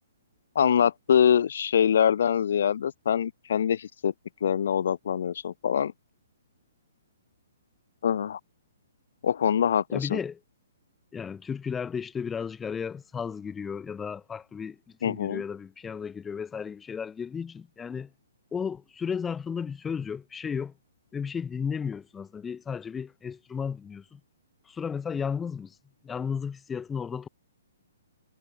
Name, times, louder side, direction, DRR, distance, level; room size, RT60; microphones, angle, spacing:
voice 1, 0.5-4.1 4.4-5.9 8.0-8.4 9.2-10.2 15.0-15.4, left 8 dB, 60° left, 0.7 m, -24 dB
voice 2, 9.9-10.4 11.1-18.1 18.5-20.7 21.1-24.2 24.7-25.8 26.0-27.3, left 6 dB, 10° left, 0.7 m, -34 dB
figure-of-eight pair, 125°, 0 cm